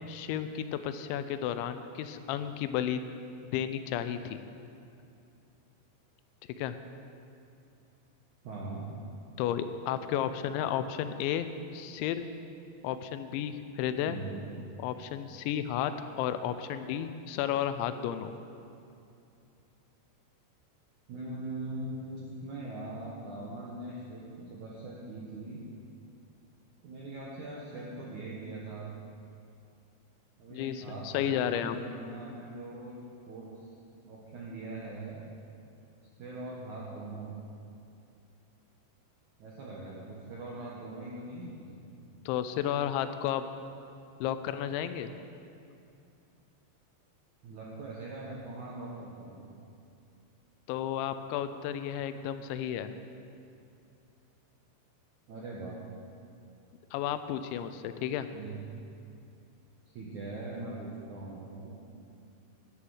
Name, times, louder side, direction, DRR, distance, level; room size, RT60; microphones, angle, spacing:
voice 1, 0.1-3.0 3.4-4.4 6.6-6.8 9.4-12.3 12.8-14.2 14.8-18.3 30.5-31.8 42.3-43.4 44.2-45.1 50.7-52.9 56.9-58.3, left 10 dB, 85° left, 10 dB, 2.9 m, -32 dB
voice 2, 8.4-8.9 14.0-14.5 21.1-25.6 26.8-28.9 30.4-32.9 33.3-33.7 34.0-35.2 36.2-37.4 39.4-41.8 47.4-49.5 55.3-55.8 58.3-58.6 59.9-61.7, right 2 dB, 75° right, -5 dB, 1.8 m, -41 dB
11.0 x 10.0 x 6.4 m, 2.6 s
omnidirectional pair, 5.3 m